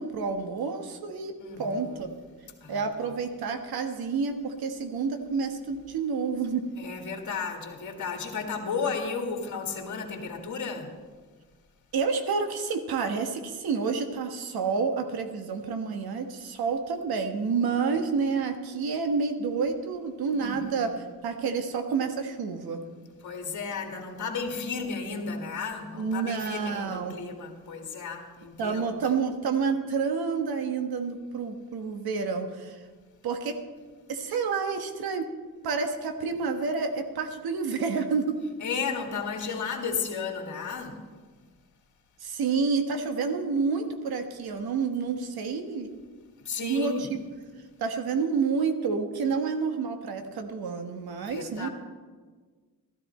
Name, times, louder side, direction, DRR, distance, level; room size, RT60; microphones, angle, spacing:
voice 1, 0.0-1.3 1.6-2.1 2.7-6.6 11.9-20.9 21.2-22.8 25.9-27.2 28.6-32.8 33.2-33.6 34.1-35.2 35.6-38.4 42.2-45.9 46.6-47.2 47.8-51.7, right 5 dB, 80° right, 6 dB, 1.3 m, -29 dB
voice 2, 1.4-2.1 2.6-3.1 6.8-10.9 20.3-20.9 23.2-29.0 38.6-41.0 46.5-47.1 51.3-51.7, left 5 dB, 55° left, 3 dB, 1.9 m, -34 dB
13.5 x 13.0 x 4.3 m, 1.5 s
cardioid pair, 95°, 36 cm